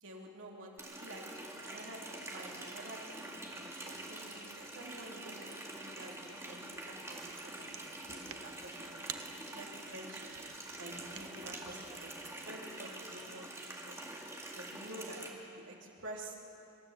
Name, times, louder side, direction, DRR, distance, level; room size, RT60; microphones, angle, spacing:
voice 1, 0.0-1.2 1.6-2.0 2.3-3.0 3.5-7.8 8.1-9.1 9.4-10.3 10.8-12.1 12.4-14.0 14.5-16.3, right 1 dB, 65° right, -1 dB, 3.0 m, -49 dB
Water tap faucet, 0.8-15.3, right 1 dB, 15° right, 2.1 m, -46 dB
sound 1, 6.9-12.3, right 10 dB, 85° right, 0.8 m, -51 dB
25.0 x 13.0 x 8.0 m, 2.9 s
head